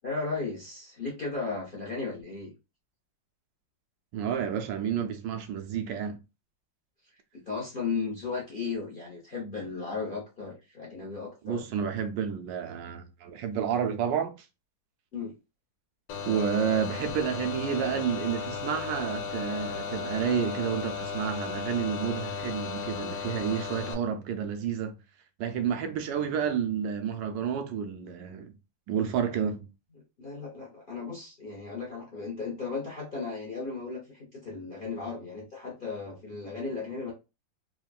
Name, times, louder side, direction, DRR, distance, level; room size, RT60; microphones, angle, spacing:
voice 1, 0.0-2.5 7.3-11.6 15.1-15.3 30.2-37.1, left 4 dB, 50° left, 0.6 m, -35 dB
voice 2, 4.1-6.2 11.4-14.3 16.2-25.0 25.4-28.5 28.9-29.7, right 8 dB, 80° right, 1.3 m, -30 dB
sound 1, 16.1-23.9, left 6 dB, 85° left, 1.4 m, -35 dB
3.5 x 2.2 x 2.3 m
omnidirectional pair, 1.9 m